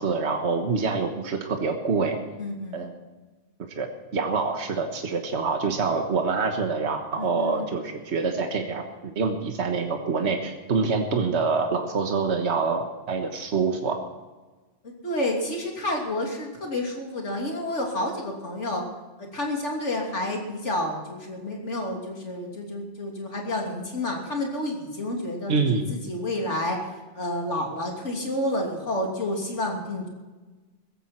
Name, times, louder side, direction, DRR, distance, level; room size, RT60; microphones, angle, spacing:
voice 1, 0.0-2.2 2.7-2.9 3.8-14.0 25.5-25.9, right 4 dB, 65° right, 4 dB, 1.6 m, -26 dB
voice 2, 2.4-2.9 7.2-7.8 14.8-18.8 19.2-30.1, left 1 dB, 75° left, 0 dB, 3.4 m, -30 dB
16.5 x 14.5 x 4.5 m, 1.2 s
omnidirectional pair, 1.2 m